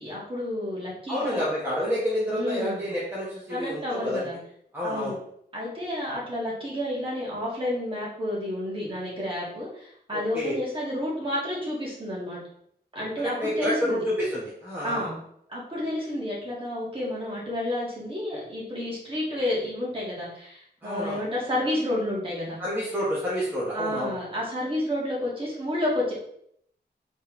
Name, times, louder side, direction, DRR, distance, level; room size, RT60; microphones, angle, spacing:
voice 1, 0.0-1.5 2.3-2.9 3.5-4.4 4.8-5.2 5.5-12.4 12.9-14.0 14.8-15.2 15.5-22.6 23.7-26.1, left 1 dB, 30° right, -5 dB, 1.7 m, -30 dB
voice 2, 1.1-4.3 4.7-5.1 10.1-10.5 13.4-15.0 20.8-21.2 22.6-24.1, equal, 10° right, -8 dB, 1.2 m, -29 dB
4.3 x 3.4 x 3.1 m, 0.71 s
wide cardioid pair, 125°, 17 cm